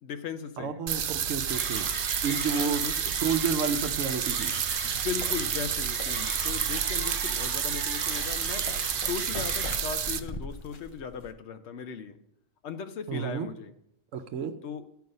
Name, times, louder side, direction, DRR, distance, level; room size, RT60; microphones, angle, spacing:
voice 1, 0.0-0.8 2.6-3.1 4.8-8.7 9.0-12.2 12.6-13.7 14.6-14.8, left 7 dB, 65° left, 10 dB, 1.0 m, -37 dB
voice 2, 0.6-1.9 2.2-4.5 13.1-13.5 14.1-14.5, right 6 dB, 80° right, 5 dB, 1.0 m, -31 dB
sound 1, 0.9-10.2, right 8 dB, 60° right, 0.6 m, -30 dB
Mechanisms, 1.5-9.8, right 1 dB, 10° right, 1.6 m, -39 dB
sound 2, 4.7-11.3, left 2 dB, 40° left, 0.4 m, -43 dB
12.5 x 4.7 x 5.3 m, 0.79 s
omnidirectional pair, 1.3 m